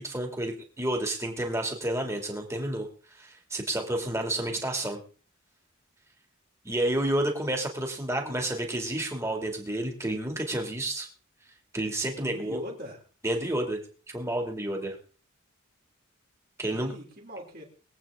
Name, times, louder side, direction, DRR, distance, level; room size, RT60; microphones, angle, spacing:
voice 1, 0.0-2.9 3.1-5.0 6.6-11.1 11.7-12.6 13.2-13.8 14.1-15.0 16.6-16.9, right 1 dB, 15° right, 3 dB, 2.3 m, -30 dB
voice 2, 12.2-13.0 16.6-17.6, equal, 45° right, -1 dB, 3.2 m, -41 dB
22.5 x 8.6 x 3.7 m, 0.40 s
head